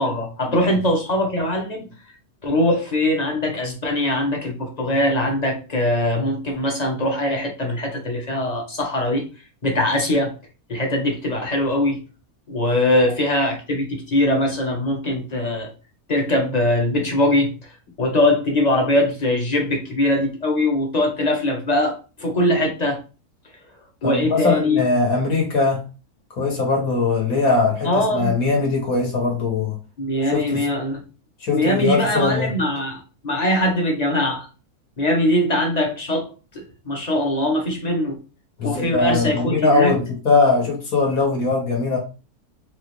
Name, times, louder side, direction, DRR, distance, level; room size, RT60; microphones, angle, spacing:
voice 1, 0.0-1.9 2.4-9.3 9.6-10.3 10.7-12.0 12.5-15.7 16.1-17.5 18.0-23.0 24.0-24.8 27.8-28.4 30.0-31.0 31.5-34.5 35.0-38.2 38.6-40.0, left 1 dB, 30° left, 1.0 m, -21 dB
voice 2, 24.0-25.8 26.4-29.8 30.3-30.7 31.4-32.5 38.6-42.0, left 3 dB, 65° left, 1.9 m, -20 dB
4.2 x 2.6 x 3.1 m
omnidirectional pair, 1.6 m